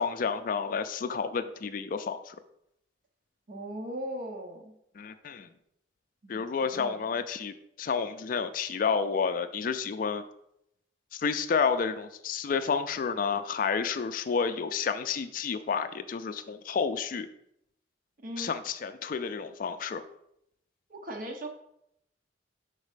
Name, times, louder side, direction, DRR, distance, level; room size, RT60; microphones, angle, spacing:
voice 1, 0.0-2.4 5.0-5.5 6.3-10.2 11.1-17.3 18.4-20.0, left 5 dB, 45° left, 9 dB, 0.3 m, -30 dB
voice 2, 3.5-4.7 6.2-6.5 6.7-7.0 18.2-18.5 20.9-21.5, right 1 dB, 45° right, 4 dB, 0.8 m, -38 dB
5.3 x 4.0 x 5.0 m, 0.78 s
head